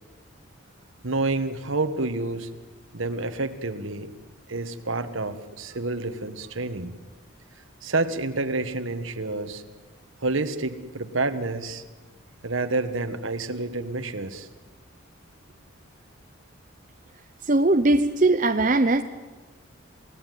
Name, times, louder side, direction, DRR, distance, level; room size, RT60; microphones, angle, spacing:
voice 1, 1.0-2.5 2.9-4.1 4.5-6.9 7.8-9.6 10.2-11.8 12.4-14.5, right 2 dB, 70° right, 9 dB, 1.6 m, -28 dB
voice 2, 17.5-19.0, right 2 dB, 40° right, 7 dB, 0.7 m, -20 dB
29.0 x 17.0 x 9.4 m, 1.2 s
head